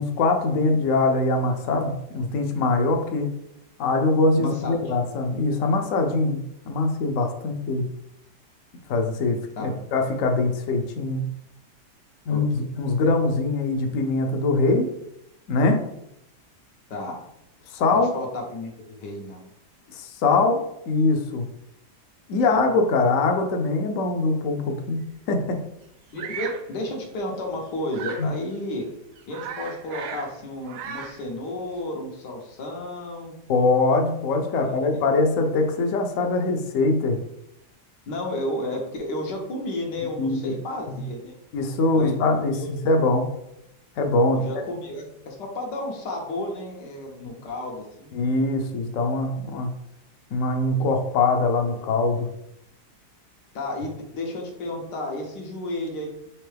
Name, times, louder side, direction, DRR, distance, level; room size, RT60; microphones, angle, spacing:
voice 1, 0.0-3.3 3.8-6.4 6.7-7.8 8.9-11.3 12.3-14.9 15.5-15.8 17.7-18.1 19.9-21.4 22.3-25.0 25.3-25.6 28.2-28.3 33.5-37.2 40.2-40.4 40.9-41.0 41.5-43.3 44.0-44.5 48.1-49.7 50.3-52.3, left 3 dB, 65° left, 4 dB, 0.9 m, -22 dB
voice 2, 4.4-4.8 9.6-9.9 12.3-12.7 16.9-17.2 17.9-19.5 26.1-28.9 29.3-33.3 34.5-35.0 38.1-41.3 41.9-42.2 42.5-42.7 44.3-48.2 53.5-56.1, left 1 dB, 85° left, 1 dB, 1.6 m, -32 dB
Bird vocalization bird call bird song, 26.2-26.7 27.9-28.3 28.8-28.9 29.2-30.3 30.6-31.2, right 7 dB, 80° right, 1.1 m, -36 dB
4.5 x 3.5 x 3.3 m, 0.80 s
omnidirectional pair, 1.8 m